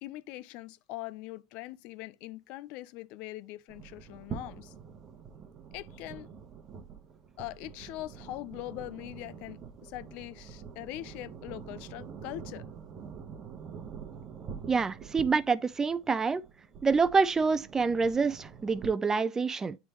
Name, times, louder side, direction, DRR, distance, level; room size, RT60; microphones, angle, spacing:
voice 1, 0.0-4.7 5.7-6.3 7.4-12.7, left 16 dB, 60° left, 0.5 m, -42 dB
sound 1, 3.7-18.9, right 6 dB, 40° right, 1.0 m, -46 dB
voice 2, 14.7-16.4 16.8-19.8, right 4 dB, 20° right, 0.4 m, -27 dB
9.4 x 3.4 x 3.0 m
hypercardioid pair, 90°, 2 cm